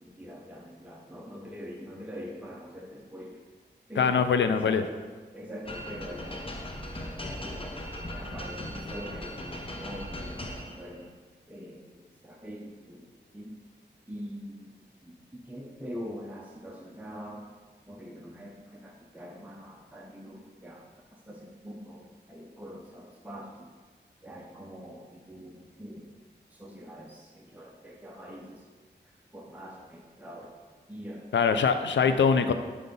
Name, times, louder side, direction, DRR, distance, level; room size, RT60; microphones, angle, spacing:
voice 1, 0.0-3.4 3.9-4.9 5.3-6.8 7.4-7.7 8.1-11.1 11.5-13.6 14.1-14.7 15.0-17.6 17.9-20.9 21.3-23.7 24.2-26.2 26.5-28.6 29.3-30.5 30.9-31.3 32.0-32.5, equal, 10° right, -1 dB, 0.7 m, -44 dB
voice 2, 4.0-4.8 31.3-32.5, left 6 dB, 85° left, 9 dB, 0.4 m, -23 dB
sound 1, 5.6-11.0, left 1 dB, 30° left, 0.8 m, -38 dB
5.5 x 3.3 x 5.3 m, 1.4 s
wide cardioid pair, 65°, 19 cm